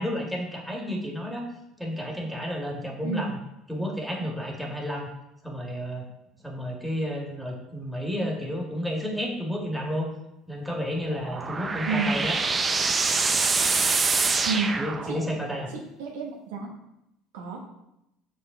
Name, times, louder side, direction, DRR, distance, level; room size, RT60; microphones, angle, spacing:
voice 1, 0.0-1.5 1.8-3.4 3.7-5.1 5.4-6.1 6.4-10.1 10.5-12.4 14.8-15.7, equal, ahead, -1 dB, 2.0 m, -31 dB
sound 1, 11.0-15.5, right 4 dB, 30° right, 0.6 m, -25 dB
voice 2, 15.7-16.7 17.3-17.6, right 4 dB, 75° right, 0 dB, 1.1 m, -30 dB
5.8 x 5.3 x 3.9 m, 0.85 s
hypercardioid pair, 70°, 0 cm